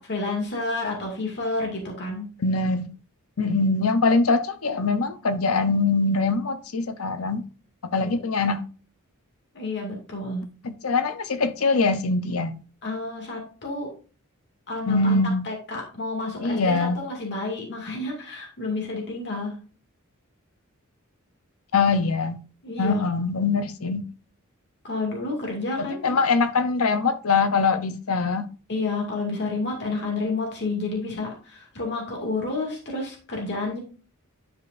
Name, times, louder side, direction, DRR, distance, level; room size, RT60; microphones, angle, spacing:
voice 1, 0.0-2.3 8.0-8.2 9.5-10.5 12.8-13.9 14.7-19.6 22.6-23.0 24.8-26.2 28.7-33.8, left 3 dB, 55° left, 2.3 m, -30 dB
voice 2, 2.4-2.9 3.4-7.4 7.8-8.6 10.6-12.5 14.9-15.4 16.4-17.0 21.7-22.4 22.8-24.1 25.8-28.5, left 3 dB, 70° left, 0.8 m, -23 dB
11.0 x 5.1 x 2.6 m
head